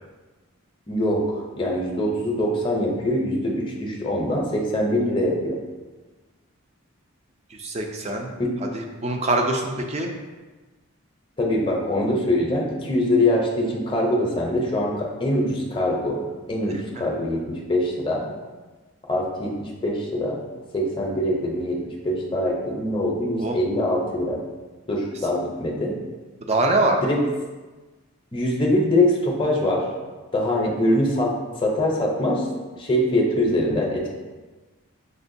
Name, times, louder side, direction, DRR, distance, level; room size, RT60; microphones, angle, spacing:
voice 1, 0.9-5.6 8.4-8.5 11.4-16.2 16.5-18.3 19.1-20.4 20.7-24.4 24.9-25.9 27.0-27.2 28.3-29.8 30.3-32.5 32.8-34.1, left 1 dB, 25° left, -1 dB, 0.6 m, -23 dB
voice 2, 7.5-8.3 8.7-10.1 23.4-23.6 26.5-27.0, right 2 dB, 30° right, 2 dB, 0.4 m, -23 dB
6.4 x 2.2 x 2.6 m, 1.3 s
head